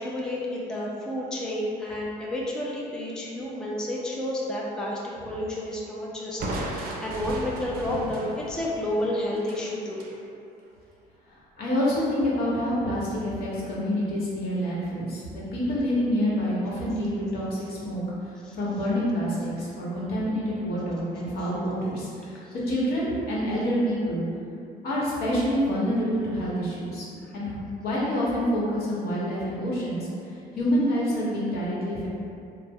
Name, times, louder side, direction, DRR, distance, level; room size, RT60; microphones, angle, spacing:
voice 1, 0.0-5.0 5.3-10.1 18.4-18.6 22.4-22.5, left 1 dB, 5° left, -4 dB, 0.3 m, -31 dB
Crushing, 6.4-10.2, right 1 dB, 60° right, 0.5 m, -35 dB
voice 2, 11.6-24.3 24.8-27.1 27.3-30.1 30.6-32.1, equal, 65° left, -6 dB, 1.0 m, -27 dB
3.2 x 2.0 x 3.5 m, 2.4 s
cardioid pair, 110°, 17 cm